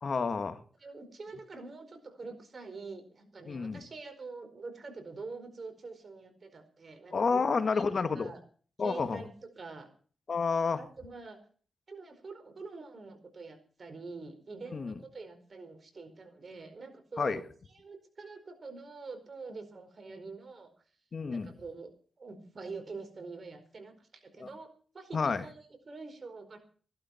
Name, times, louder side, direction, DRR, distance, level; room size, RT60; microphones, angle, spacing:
voice 1, 0.0-0.6 3.5-3.8 7.1-8.3 8.8-9.2 10.3-10.8 14.7-14.9 17.2-17.4 21.1-21.5 24.4-24.5 25.1-25.4, left 4 dB, 55° left, 9 dB, 1.7 m, -30 dB
voice 2, 0.8-7.9 8.1-8.4 8.8-9.3 9.6-9.9 10.8-11.4 11.9-20.7 21.3-24.7 24.9-26.6, right 3 dB, 50° right, 7 dB, 4.7 m, -45 dB
16.5 x 12.0 x 5.8 m, 0.44 s
cardioid pair, 70°, 0 cm